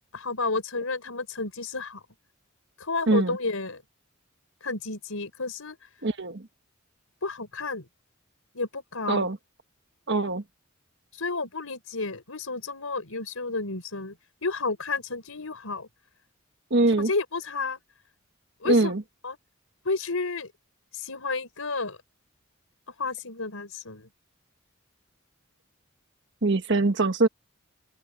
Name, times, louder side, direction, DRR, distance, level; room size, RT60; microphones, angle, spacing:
voice 1, 0.1-2.0 2.8-3.8 4.6-5.8 7.2-7.9 8.5-9.3 11.1-14.1 14.4-15.9 17.0-17.8 18.6-18.9 19.2-19.4 19.8-20.5 20.9-22.0 22.9-24.1, left 3 dB, 85° left, 4.6 m, -31 dB
voice 2, 3.1-3.4 6.0-6.4 9.1-9.4 10.1-10.4 16.7-17.1 18.6-19.0 26.4-27.3, right 2 dB, 55° right, 1.4 m, -23 dB
open air
head